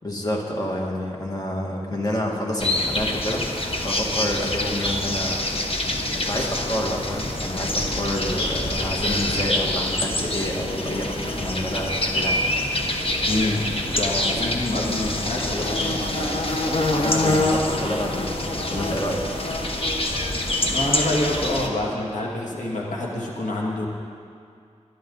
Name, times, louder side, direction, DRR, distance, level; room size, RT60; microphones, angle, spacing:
voice 1, 0.0-3.5 3.8-5.4 6.1-12.4 17.0-19.3, left 1 dB, 30° left, -2 dB, 2.1 m, -28 dB
sound 1, 2.6-21.7, left 1 dB, 50° left, 1.4 m, -25 dB
voice 2, 13.3-16.3 20.6-23.9, left 1 dB, 85° left, -4 dB, 2.2 m, -27 dB
20.5 x 12.0 x 4.0 m, 2.3 s
wide cardioid pair, 80°, 12 cm